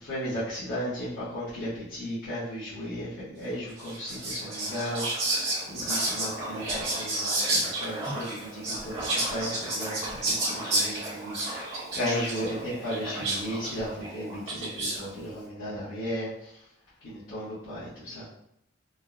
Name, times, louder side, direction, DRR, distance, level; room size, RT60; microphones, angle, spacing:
voice 1, 0.0-5.0 5.7-11.6 11.9-16.3 17.0-18.3, equal, 70° left, -14 dB, 1.3 m, -35 dB
Whispering, 3.8-15.1, right 1 dB, 35° right, 1.3 m, -31 dB
3.6 x 2.1 x 2.4 m, 0.76 s
head